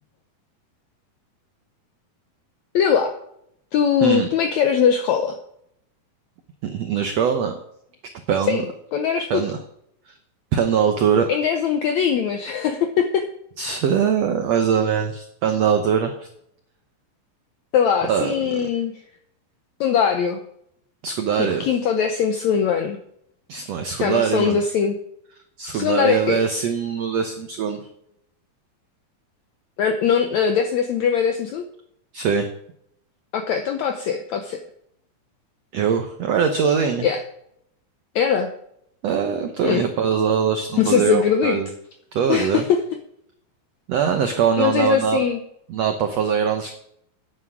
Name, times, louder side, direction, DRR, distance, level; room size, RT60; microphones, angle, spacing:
voice 1, 2.7-3.1 3.7-5.4 8.5-8.7 8.9-9.4 11.3-13.2 17.7-18.9 19.8-20.4 21.4-23.0 24.0-25.0 25.7-26.4 29.8-31.6 33.3-34.6 37.0-37.2 38.1-38.5 39.6-39.8 40.8-41.6 42.3-42.8 44.6-45.4, left 7 dB, 80° left, 6 dB, 1.6 m, -21 dB
voice 2, 6.6-7.6 8.3-8.6 9.3-9.6 10.1-10.2 10.5-11.3 13.6-16.3 18.1-18.3 21.0-21.7 23.5-24.6 25.6-27.8 32.1-32.5 35.7-37.1 39.0-41.7 42.1-42.6 43.9-45.2 45.7-46.7, right 7 dB, 80° right, 7 dB, 1.4 m, -22 dB
9.8 x 8.6 x 6.1 m, 0.72 s
omnidirectional pair, 4.2 m